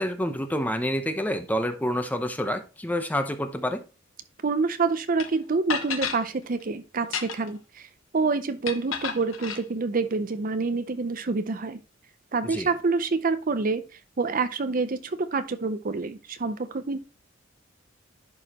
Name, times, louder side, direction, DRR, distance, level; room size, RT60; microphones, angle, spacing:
voice 1, 0.0-3.8 12.4-12.7, equal, 10° left, 7 dB, 0.8 m, -28 dB
voice 2, 4.4-7.9 8.1-11.8 12.3-13.8 14.2-17.0, right 4 dB, 45° right, 11 dB, 0.6 m, -27 dB
sound 1, 5.2-5.3 5.7-6.2 7.0-7.6 8.7-9.6, left 6 dB, 80° left, 1.0 m, -31 dB
11.0 x 4.8 x 3.0 m, 0.31 s
head